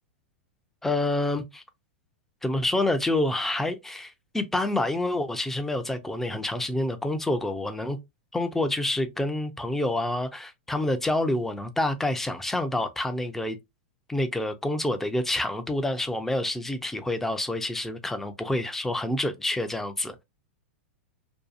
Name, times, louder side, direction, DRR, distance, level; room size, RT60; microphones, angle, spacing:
voice 1, 0.8-1.6 2.4-8.0 8.3-13.6 14.1-20.2, left 1 dB, 5° left, 0.4 m, -28 dB
2.7 x 2.3 x 2.4 m
hypercardioid pair, 125°, 7 cm